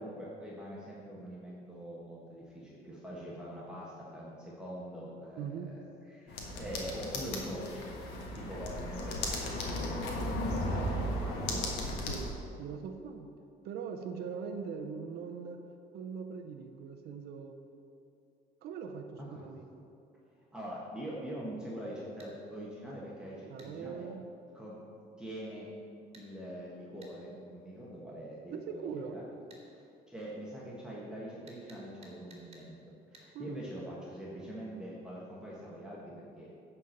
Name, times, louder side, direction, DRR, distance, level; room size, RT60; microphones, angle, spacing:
voice 1, 0.0-7.9 8.3-10.3 10.8-11.7 19.2-19.5 20.4-24.1 24.5-25.7 26.1-29.3 29.7-36.5, equal, 5° right, -6 dB, 1.4 m, -44 dB
voice 2, 5.4-5.8 10.7-11.1 12.1-13.3 13.6-15.7 15.9-17.6 18.6-19.7 23.5-24.2 28.5-29.2 33.3-33.6, right 6 dB, 70° right, 5 dB, 0.7 m, -41 dB
sound 1, 6.3-12.3, left 1 dB, 85° left, 1.4 m, -35 dB
sound 2, 22.2-22.3 23.6-23.7 26.1-26.3 27.0-27.2 29.5-29.6 31.5-32.7 33.1-33.3, right 2 dB, 35° right, 1.9 m, -56 dB
9.4 x 4.5 x 6.5 m, 2.6 s
cardioid pair, 110°, 17 cm